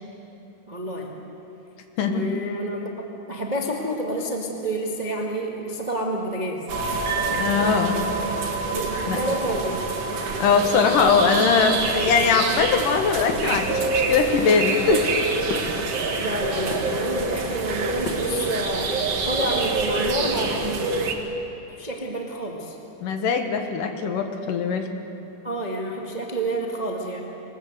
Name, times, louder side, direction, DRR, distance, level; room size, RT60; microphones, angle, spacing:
voice 1, 0.7-1.2 2.0-2.9 3.3-6.7 8.7-9.8 15.9-21.1 21.8-22.8 24.9-25.0 25.4-27.2, right 1 dB, 25° right, 0 dB, 0.9 m, -29 dB
sound 1, 6.7-21.1, right 3 dB, 50° right, 2.5 m, -26 dB
voice 2, 7.3-8.0 9.1-9.2 10.4-15.2 23.0-24.9, left 5 dB, 80° left, 6 dB, 3.0 m, -21 dB
sound 2, 13.3-14.0 14.4-16.3 16.6-17.4 18.0-18.7 18.9-19.0 19.3-20.0, left 2 dB, 40° left, 1.9 m, -36 dB
21.5 x 20.5 x 8.1 m, 2.9 s
omnidirectional pair, 3.8 m